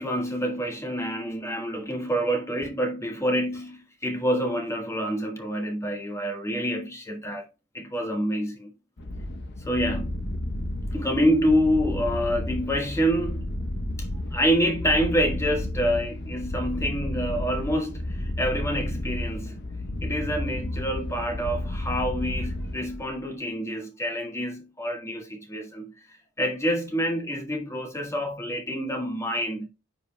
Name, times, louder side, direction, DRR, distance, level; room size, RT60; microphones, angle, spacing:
voice 1, 0.0-7.5 7.7-8.7 9.6-10.2 10.9-13.5 14.0-19.6 20.0-29.7, equal, 15° left, 1.4 m, -27 dB
sound 1, 9.0-23.2, left 1 dB, 50° left, 0.8 m, -32 dB
9.4 x 5.5 x 2.2 m
head